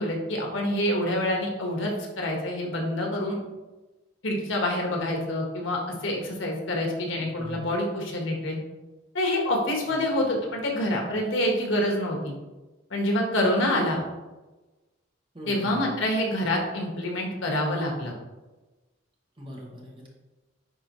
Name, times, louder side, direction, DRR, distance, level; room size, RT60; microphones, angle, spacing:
voice 1, 0.0-3.4 4.2-8.6 9.1-12.3 12.9-14.0 15.5-18.1, left 1 dB, 80° left, 0 dB, 1.5 m, -27 dB
voice 2, 7.1-7.6 9.9-10.0 13.7-14.0 15.3-15.8 19.4-20.1, right 1 dB, 25° right, -2 dB, 1.5 m, -40 dB
10.0 x 3.9 x 3.1 m, 1.1 s
head